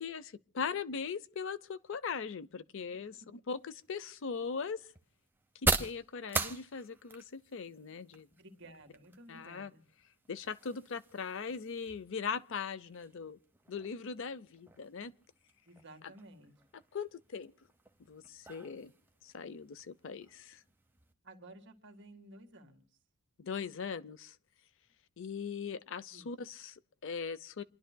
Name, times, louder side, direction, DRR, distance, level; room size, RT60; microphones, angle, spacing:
voice 1, 0.0-4.8 5.6-8.3 9.3-9.7 10.3-13.4 13.7-15.1 16.0-16.1 16.9-17.5 18.1-18.9 19.2-20.6 23.4-24.4 25.2-27.6, left 5 dB, 60° left, 0.5 m, -40 dB
sound 1, 3.5-21.1, right 3 dB, 10° right, 0.8 m, -42 dB
voice 2, 8.4-9.8 15.7-16.5 21.2-22.9 26.1-26.3, right 1 dB, 55° right, 1.9 m, -54 dB
28.5 x 11.5 x 2.2 m
head